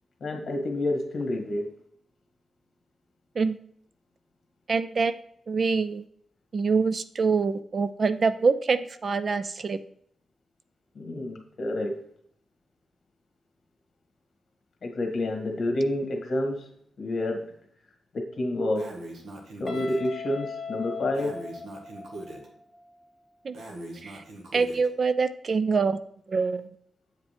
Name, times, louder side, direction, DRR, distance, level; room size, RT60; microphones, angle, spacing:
voice 1, 0.2-1.7 10.9-12.0 14.8-16.7 17.0-17.5 18.1-18.9 19.6-21.4, left 1 dB, 50° left, 2 dB, 1.8 m, -29 dB
voice 2, 4.7-5.2 5.5-6.0 6.5-9.8 23.4-23.6 24.0-24.2 24.5-26.0 26.3-26.7, right 4 dB, 40° right, 13 dB, 0.4 m, -25 dB
Breathing, 18.7-20.1 21.1-22.5 23.5-24.9, right 1 dB, 70° right, 1.5 m, -41 dB
Guitar, 19.7-22.5, left 5 dB, 30° left, 1.3 m, -38 dB
8.3 x 5.2 x 3.3 m, 0.66 s
wide cardioid pair, 140°, 0 cm